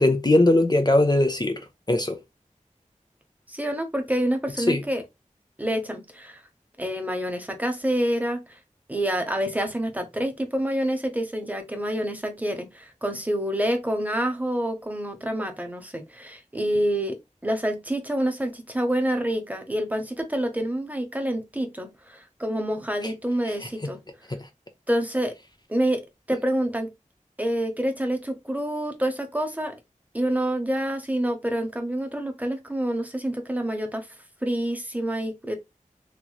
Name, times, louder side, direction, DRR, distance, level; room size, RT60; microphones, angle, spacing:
voice 1, 0.0-1.6 1.9-2.2 4.6-4.8 23.0-23.1 23.5-23.9 24.3-24.5, left 1 dB, 30° left, 0.6 m, -21 dB
voice 2, 3.5-5.0 5.6-6.4 6.8-8.6 8.9-24.0 24.9-25.3 25.7-26.9 27.4-29.7 30.1-34.1 34.4-35.6, right 1 dB, 10° right, 0.8 m, -27 dB
3.1 x 2.9 x 2.3 m
wide cardioid pair, 50°, 14 cm